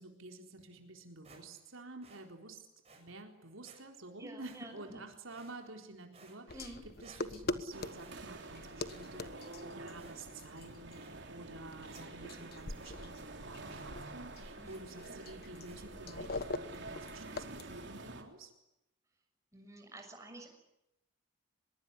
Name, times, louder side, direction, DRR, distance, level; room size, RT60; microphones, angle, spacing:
voice 1, 0.0-2.6 3.0-6.7 7.0-18.5, right 2 dB, 75° right, 3 dB, 4.0 m, -50 dB
sound 1, 1.2-1.7 2.0-2.2 2.8-3.0 3.6-3.8 4.4-4.9 5.3-5.8 6.1-6.7 7.0-7.6 7.9-8.5 8.9-9.6 9.9-10.4 10.9-11.2 11.6-11.7 11.8-12.4 12.8-13.0 13.3-13.4 13.7-14.0 14.6-14.9 15.6-15.8, right 3 dB, 30° right, 7.2 m, -60 dB
voice 2, 4.2-5.0 6.5-6.8 14.6-14.9 19.5-20.6, right 1 dB, 15° right, 3 dB, 6.4 m, -50 dB
sound 2, 6.5-17.6, left 2 dB, 45° left, 1.3 m, -44 dB
sound 3, 7.7-18.2, right 2 dB, 55° right, 3.7 m, -48 dB
24.0 x 22.0 x 9.9 m, 0.87 s
head